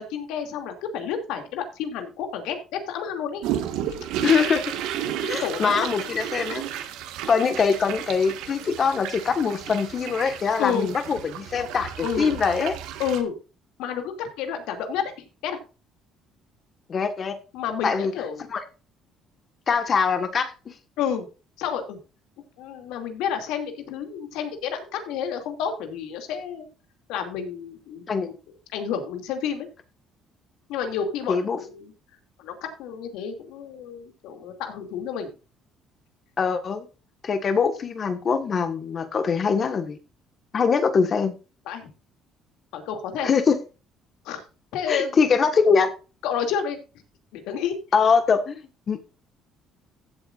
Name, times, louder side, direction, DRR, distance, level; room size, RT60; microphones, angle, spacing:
voice 1, 0.0-3.4 5.4-6.1 10.6-11.0 12.0-12.3 13.0-13.3 13.8-15.6 17.5-18.5 21.0-21.3 21.6-22.0 22.6-26.7 27.1-28.3 28.7-29.7 30.7-31.9 32.4-35.3 41.7-41.9 42.7-43.3 44.2-44.4 44.7-45.2 46.2-46.8 47.3-47.8, left 7 dB, 85° left, 2.6 m, -30 dB
sound 1, 3.4-13.2, right 10 dB, 90° right, 1.6 m, -32 dB
voice 2, 4.2-4.6 5.2-6.6 7.3-12.7 16.9-17.4 17.8-18.1 18.5-18.6 19.7-20.7 28.1-28.3 31.3-31.6 36.4-36.9 37.2-40.0 40.5-41.3 43.2-43.6 44.9-45.9 47.9-49.0, left 5 dB, 30° left, 1.6 m, -23 dB
15.5 x 8.0 x 2.6 m
cardioid pair, 160°, 0 cm